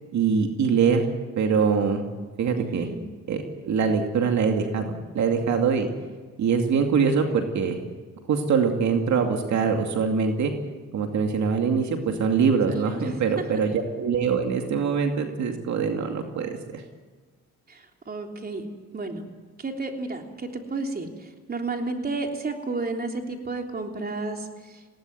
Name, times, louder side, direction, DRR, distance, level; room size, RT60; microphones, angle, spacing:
voice 1, 0.1-1.0 1.4-2.0 2.4-2.9 3.3-5.9 6.4-7.8 8.3-10.5 10.9-16.8, right 6 dB, 70° right, 4 dB, 2.4 m, -23 dB
voice 2, 2.6-3.0 12.7-13.1 17.7-18.7 18.9-19.2 19.6-24.5, right 3 dB, 30° right, 3 dB, 3.5 m, -32 dB
20.0 x 18.0 x 9.4 m, 1.4 s
cardioid pair, 90°, 30 cm